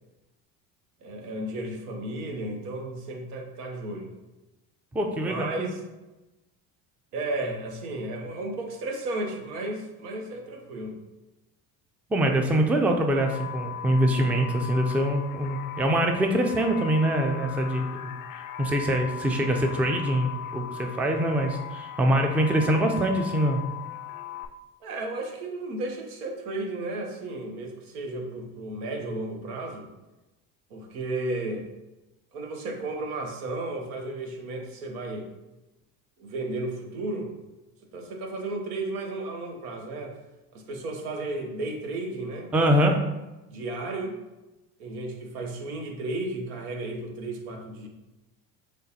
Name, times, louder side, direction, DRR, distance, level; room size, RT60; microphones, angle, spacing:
voice 1, 1.0-4.1 5.2-5.8 7.1-11.0 24.8-29.9 30.7-31.7 32.3-35.3 36.2-37.3 37.9-40.2 40.5-42.5 42.8-43.0 43.5-44.1 44.8-47.9, right 2 dB, 85° right, 2 dB, 0.9 m, -33 dB
voice 2, 4.9-5.7 12.1-18.1 18.6-23.6 42.5-43.0, right 1 dB, 5° right, 3 dB, 0.3 m, -24 dB
sound 1, 13.2-24.5, left 10 dB, 55° left, 0.5 m, -38 dB
6.4 x 2.2 x 2.8 m, 1.0 s
hypercardioid pair, 75°, 43 cm